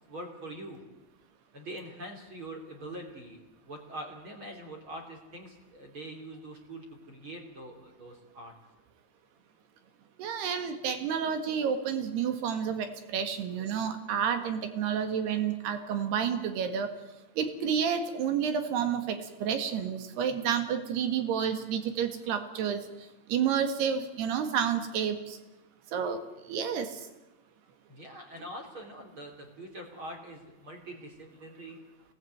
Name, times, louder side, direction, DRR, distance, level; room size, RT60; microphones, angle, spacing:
voice 1, 0.1-0.8 1.5-8.5 27.9-31.8, right 1 dB, 30° right, 3 dB, 3.1 m, -44 dB
voice 2, 10.2-16.9 17.4-22.8 23.3-25.4 25.9-27.0, right 7 dB, 60° right, 8 dB, 3.5 m, -30 dB
24.0 x 19.0 x 9.5 m, 1.0 s
omnidirectional pair, 6.0 m